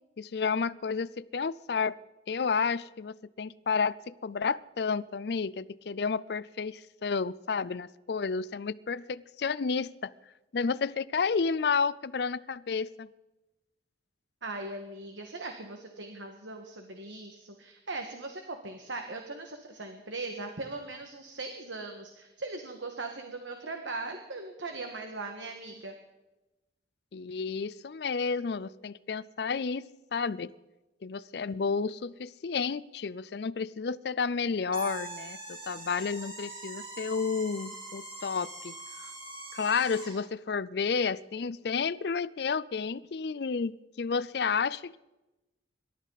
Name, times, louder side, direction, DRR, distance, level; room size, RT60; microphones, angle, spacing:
voice 1, 0.2-2.0 2.3-10.1 10.5-13.1 27.1-29.8 30.1-30.5 31.0-38.8 39.5-45.0, left 5 dB, 60° left, 18 dB, 0.4 m, -31 dB
voice 2, 14.4-25.9, right 3 dB, 85° right, 4 dB, 1.7 m, -39 dB
sound 1, 34.7-40.3, right 2 dB, 25° right, 3.5 m, -43 dB
26.5 x 13.0 x 4.1 m, 1.0 s
head